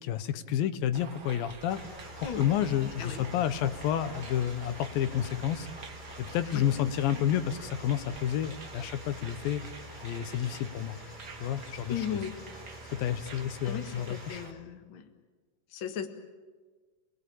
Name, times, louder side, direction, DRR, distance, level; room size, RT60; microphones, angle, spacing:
voice 1, 0.0-1.8 2.2-5.7 6.2-9.6 10.0-11.0 11.4-12.1 12.9-14.4, left 10 dB, 80° left, 12 dB, 2.6 m, -30 dB
sound 1, 0.9-14.5, right 5 dB, 75° right, 0.8 m, -48 dB
sound 2, 1.7-14.5, left 1 dB, 10° left, 5.5 m, -47 dB
voice 2, 2.8-3.2 6.5-6.6 11.9-12.4 13.6-15.1 15.7-16.1, left 8 dB, 45° left, 6 dB, 1.8 m, -36 dB
28.0 x 19.5 x 8.5 m, 1.4 s
omnidirectional pair, 4.2 m